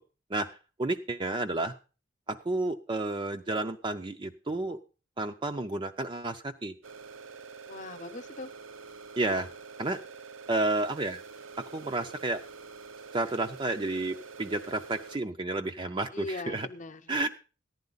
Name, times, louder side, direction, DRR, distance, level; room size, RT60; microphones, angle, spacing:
voice 1, 0.3-1.7 2.3-4.8 5.2-6.7 9.2-9.5 9.8-10.0 10.5-11.2 11.6-12.4 13.1-16.7 17.1-17.3, right 2 dB, 25° right, 6 dB, 0.5 m, -31 dB
sound 1, 6.8-15.2, right 5 dB, 85° right, 0.8 m, -47 dB
voice 2, 7.7-8.5 16.1-17.3, left 2 dB, 40° left, 10 dB, 0.8 m, -40 dB
14.5 x 10.5 x 4.0 m, 0.35 s
head